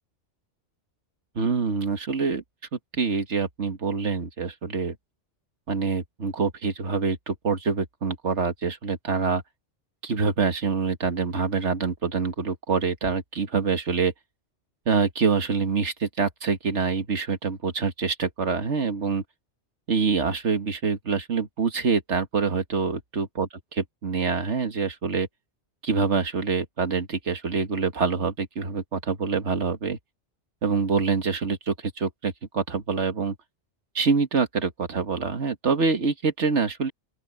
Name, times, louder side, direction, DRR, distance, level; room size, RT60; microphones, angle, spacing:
voice 1, 1.4-2.4 2.9-5.0 5.7-9.4 10.0-14.1 14.9-19.2 19.9-25.3 25.8-30.0 30.6-33.4 34.0-36.9, right 5 dB, 70° right, 1.9 m, -25 dB
open air
omnidirectional pair, 1.2 m